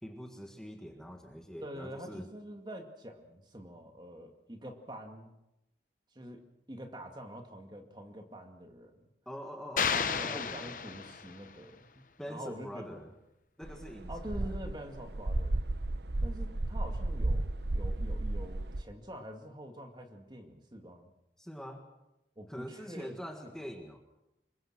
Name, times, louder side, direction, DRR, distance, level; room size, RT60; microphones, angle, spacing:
voice 1, 0.0-2.3 9.2-10.7 12.2-13.1 13.6-14.5 21.4-21.8 22.5-24.0, equal, 5° left, 3 dB, 1.7 m, -44 dB
voice 2, 1.6-5.3 6.1-9.0 9.8-13.0 14.1-15.6 16.2-21.1 22.4-23.2 23.4-23.6, equal, 25° right, 4 dB, 2.3 m, -46 dB
sound 1, 9.8-11.5, left 6 dB, 50° left, 1.0 m, -32 dB
sound 2, 13.6-18.8, right 2 dB, 75° right, 0.9 m, -33 dB
26.5 x 23.0 x 6.2 m, 0.90 s
head